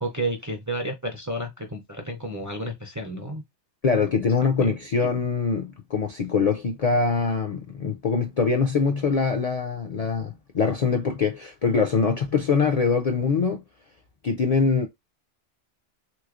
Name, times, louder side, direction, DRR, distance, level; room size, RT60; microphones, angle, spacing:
voice 1, 0.0-3.4 4.2-4.3 4.6-4.7, right 1 dB, 25° right, 0.4 m, -31 dB
voice 2, 3.8-13.6 14.2-14.9, left 5 dB, 60° left, 0.4 m, -23 dB
3.2 x 3.1 x 2.4 m
omnidirectional pair, 1.2 m